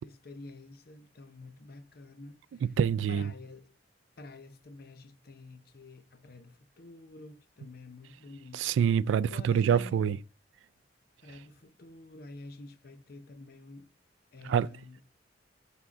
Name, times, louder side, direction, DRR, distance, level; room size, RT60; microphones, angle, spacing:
voice 1, 0.0-2.8 3.1-3.7 4.2-8.8 9.3-10.0 11.2-13.9 14.3-15.0, left 2 dB, 55° left, 0.7 m, -49 dB
voice 2, 2.8-3.3 8.5-10.2 14.5-14.7, right 8 dB, 85° right, 0.3 m, -26 dB
6.0 x 3.7 x 5.9 m
head